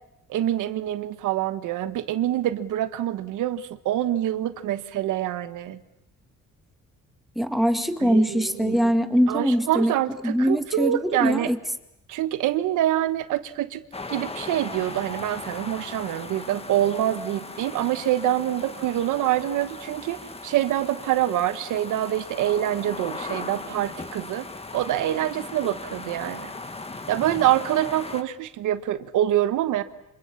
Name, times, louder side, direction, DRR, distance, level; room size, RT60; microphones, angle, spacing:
voice 1, 0.3-5.8 8.0-8.9 9.3-11.5 12.1-13.8 14.1-24.5 24.7-26.5 27.1-29.8, right 12 dB, 85° right, 12 dB, 1.2 m, -25 dB
voice 2, 7.4-9.9 10.2-11.6, equal, ahead, 8 dB, 2.0 m, -22 dB
sound 1, 13.9-28.2, left 3 dB, 20° left, 1.6 m, -38 dB
26.5 x 25.0 x 7.2 m, 0.90 s
cardioid pair, 90°, 30 cm